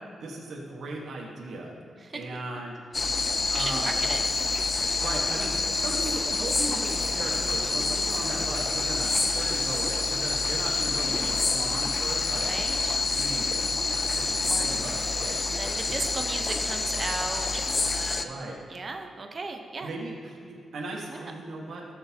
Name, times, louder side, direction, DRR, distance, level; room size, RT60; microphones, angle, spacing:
voice 1, 0.2-1.7 2.1-2.8 3.5-3.9 4.9-12.5 13.1-13.4 13.8-15.4 18.1-18.6 19.8-21.9, right 2 dB, 75° right, -2 dB, 1.5 m, -37 dB
sound 1, 2.9-18.2, left 3 dB, 30° left, 0.5 m, -27 dB
voice 2, 3.5-4.2 11.2-11.4 12.4-13.0 15.5-18.4 18.7-19.9 21.1-21.3, right 3 dB, 35° right, 4 dB, 0.9 m, -36 dB
17.0 x 6.6 x 2.9 m, 2.4 s
cardioid pair, 115°, 0 cm